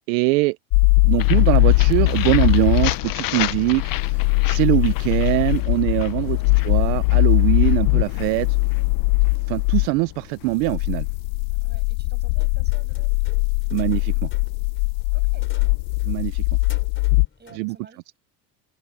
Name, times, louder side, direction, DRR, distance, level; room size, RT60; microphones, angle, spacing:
voice 1, 0.1-0.6 1.1-3.8 4.5-6.4 6.6-8.5 9.5-11.1 13.7-14.3 16.1-16.4 17.6-17.7, right 24 dB, 80° right, 0.9 m, -22 dB
sound 1, 0.7-9.9 10.5-17.3, left 29 dB, 75° left, 0.6 m, -20 dB
sound 2, 1.2-11.0, left 15 dB, 45° left, 0.8 m, -33 dB
voice 2, 6.2-6.6 11.5-13.2 15.1-15.7 17.4-18.0, right 4 dB, 20° right, 6.8 m, -50 dB
sound 3, 12.4-17.8, left 5 dB, 25° left, 4.2 m, -48 dB
supercardioid pair, 100°, 49 cm